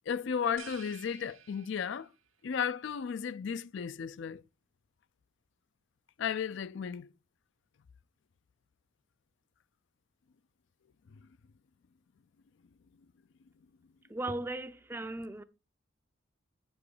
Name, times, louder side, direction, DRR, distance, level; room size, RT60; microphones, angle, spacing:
voice 1, 0.1-2.1 2.4-4.4 6.2-7.1, left 7 dB, 65° left, 0.4 m, -34 dB
sound 1, 0.6-2.3, right 10 dB, 85° right, 0.9 m, -52 dB
voice 2, 14.1-15.4, right 2 dB, 10° right, 0.4 m, -37 dB
8.5 x 7.1 x 4.8 m
head